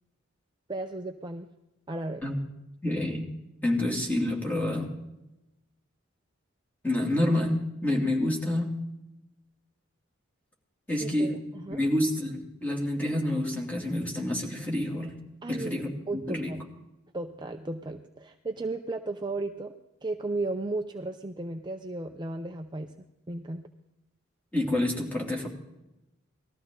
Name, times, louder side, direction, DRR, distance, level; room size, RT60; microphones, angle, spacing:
voice 1, 0.7-1.5 1.9-2.2 11.0-11.8 15.4-15.8 16.1-16.6 17.1-19.7 20.0-22.9 23.3-23.7, right 2 dB, 20° right, 4 dB, 0.6 m, -34 dB
voice 2, 2.8-3.2 3.6-4.9 6.8-8.7 10.9-11.3 11.7-15.2 15.5-16.5 24.5-25.5, left 1 dB, 10° left, -2 dB, 2.9 m, -28 dB
19.5 x 14.0 x 3.9 m, 0.93 s
head